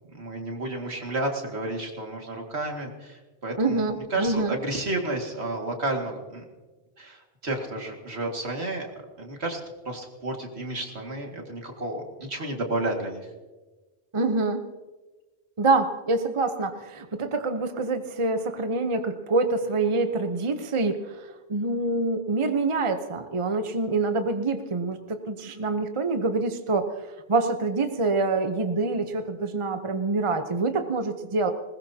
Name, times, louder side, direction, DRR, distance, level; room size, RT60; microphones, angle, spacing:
voice 1, 0.1-3.8 4.1-6.4 7.0-8.9 9.2-9.6 9.9-13.3, right 2 dB, 70° right, 2 dB, 2.4 m, -31 dB
voice 2, 3.6-4.6 14.1-14.6 15.6-26.9 27.3-31.5, right 3 dB, 30° right, 7 dB, 0.9 m, -26 dB
20.5 x 20.0 x 2.8 m, 1.2 s
omnidirectional pair, 1.1 m